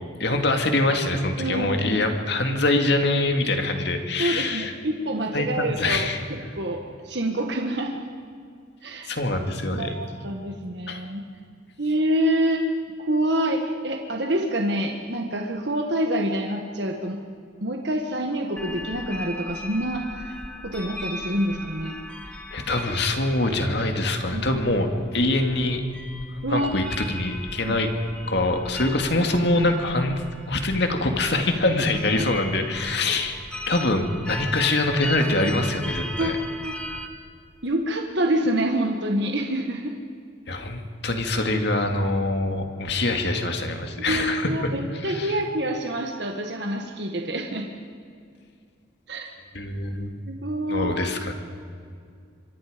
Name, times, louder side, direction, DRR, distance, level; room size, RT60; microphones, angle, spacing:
voice 1, 0.2-4.7 5.3-6.2 9.1-9.9 10.9-11.0 22.5-25.8 26.5-27.9 28.3-33.4 33.7-36.3 40.5-44.7 45.0-45.4 49.5-50.1 50.7-51.3, left 2 dB, 55° left, 5 dB, 2.3 m, -24 dB
voice 2, 1.4-1.7 4.2-6.1 6.5-8.1 8.8-9.2 9.7-11.2 11.8-12.6 13.0-17.2 17.6-20.3 20.6-22.0 22.2-22.3 24.3-24.4 26.4-26.7 27.6-27.7 34.3-34.4 36.2-36.9 37.6-40.0 44.1-47.7 49.1-49.3 50.3-50.9, right 1 dB, 55° right, 2 dB, 1.6 m, -27 dB
sound 1, 18.6-37.1, left 1 dB, 5° left, 1.4 m, -38 dB
26.5 x 23.5 x 5.2 m, 2.3 s
head